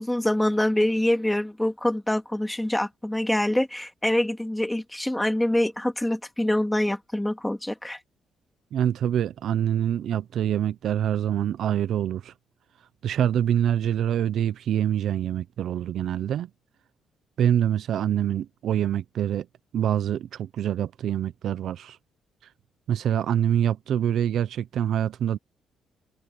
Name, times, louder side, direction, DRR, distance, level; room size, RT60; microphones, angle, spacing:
voice 1, 0.0-8.0, left 1 dB, 5° left, 2.8 m, -25 dB
voice 2, 8.7-12.3 13.0-16.5 17.4-19.5 19.7-22.0 22.9-25.4, right 10 dB, 70° right, 0.7 m, -25 dB
cardioid pair, 90°, 0 cm